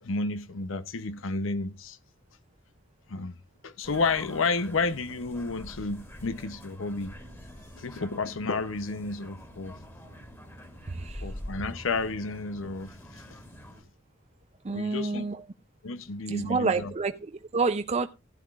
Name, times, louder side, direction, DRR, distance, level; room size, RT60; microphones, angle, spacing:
voice 1, 0.0-2.0 3.1-3.4 3.6-7.2 7.8-9.8 11.2-13.2 14.7-15.2 15.8-16.9, left 3 dB, 75° left, 0.8 m, -31 dB
sound 1, 3.8-13.8, equal, 15° left, 1.9 m, -45 dB
voice 2, 10.9-11.3 14.6-15.4 16.3-18.1, right 4 dB, 35° right, 0.5 m, -29 dB
16.0 x 10.5 x 2.4 m
head